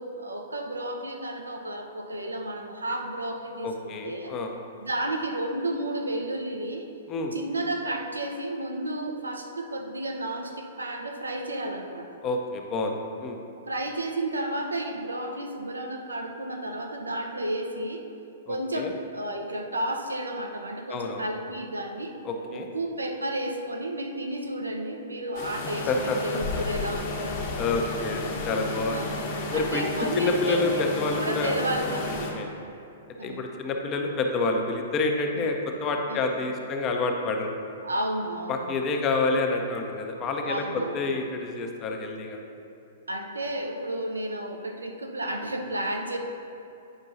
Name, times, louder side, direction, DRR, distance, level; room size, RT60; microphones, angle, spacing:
voice 1, 0.0-4.3 4.8-6.9 7.3-12.1 13.7-18.1 18.5-22.1 22.5-27.4 28.9-30.8 31.1-32.3 33.2-33.5 35.4-35.5 36.1-36.3 37.8-38.7 40.4-41.0 43.1-46.2, right 1 dB, 75° right, 3 dB, 0.6 m, -32 dB
voice 2, 3.6-4.5 7.1-7.4 12.2-13.4 18.5-18.9 20.9-21.2 22.2-22.7 25.9-26.2 26.5-26.6 27.6-29.0 29.5-29.9 30.2-31.5 32.3-32.5 33.2-35.6 35.8-37.5 38.5-40.6 40.9-42.4, left 3 dB, 25° left, 3 dB, 0.6 m, -28 dB
sound 1, 25.3-32.3, left 2 dB, 40° left, 1.0 m, -32 dB
8.9 x 5.4 x 2.6 m, 2.7 s
figure-of-eight pair, 110°, 0 cm